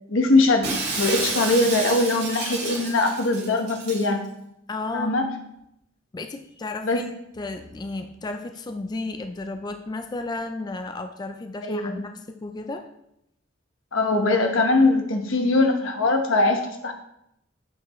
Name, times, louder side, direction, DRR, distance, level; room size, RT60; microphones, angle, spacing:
voice 1, 0.1-4.2 4.9-5.3 6.8-7.0 11.6-12.0 13.9-16.9, left 2 dB, 85° left, 4 dB, 1.0 m, -21 dB
Shatter, 0.6-4.1, right 3 dB, 55° right, 2.6 m, -30 dB
voice 2, 4.7-5.2 6.1-7.1 7.4-12.1 12.4-12.9, left 2 dB, 20° left, 6 dB, 0.3 m, -33 dB
7.3 x 5.6 x 3.0 m, 0.79 s
head